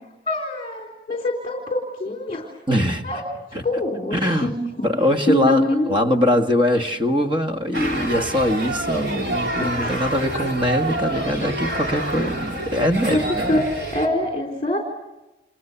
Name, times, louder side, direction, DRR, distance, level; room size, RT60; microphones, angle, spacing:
voice 1, 0.3-2.5 3.0-3.2 3.6-4.5 5.3-5.9 9.6-10.2 13.1-13.2 13.5-13.6 13.9-14.8, left 1 dB, 30° left, 1 dB, 3.9 m, -24 dB
voice 2, 2.7-3.0 3.5-3.6 4.1-4.5 4.8-13.6, equal, 25° right, 5 dB, 1.7 m, -22 dB
sound 1, 7.7-14.1, right 1 dB, 65° right, 4.0 m, -27 dB
30.0 x 28.5 x 7.0 m, 1.0 s
head